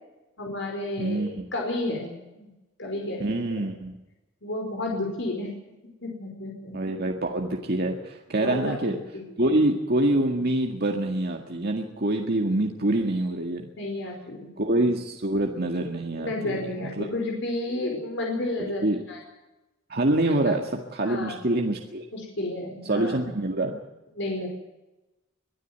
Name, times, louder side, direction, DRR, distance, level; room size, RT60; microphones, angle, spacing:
voice 1, 0.4-2.5 2.8-3.2 3.5-3.6 4.4-5.5 6.0-6.7 8.4-9.7 13.8-14.5 16.2-19.2 20.4-20.5 21.0-21.3 22.1-23.2 24.2-24.5, left 2 dB, 60° left, 0 dB, 5.0 m, -32 dB
voice 2, 1.0-1.4 3.2-3.9 6.7-9.0 9.4-13.7 14.6-17.1 18.8-19.0 19.9-22.0 22.9-23.8, right 1 dB, 50° right, 2 dB, 1.9 m, -26 dB
23.0 x 12.5 x 9.3 m, 1.0 s
head